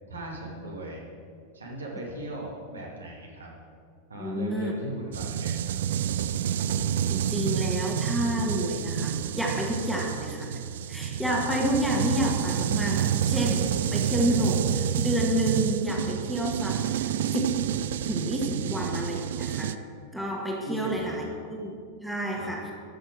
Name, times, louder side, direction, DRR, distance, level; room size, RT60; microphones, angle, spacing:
voice 1, 0.1-1.1 1.5-3.5 4.1-5.8 20.6-21.3 22.3-22.5, right 1 dB, 75° right, -2 dB, 2.4 m, -38 dB
voice 2, 4.2-4.7 7.1-10.6 10.9-17.5 18.0-19.8 20.1-22.7, equal, ahead, -2 dB, 1.9 m, -29 dB
sound 1, 5.1-19.8, right 9 dB, 60° right, 0.4 m, -28 dB
13.5 x 6.6 x 6.4 m, 2.2 s
figure-of-eight pair, 90°, 0 cm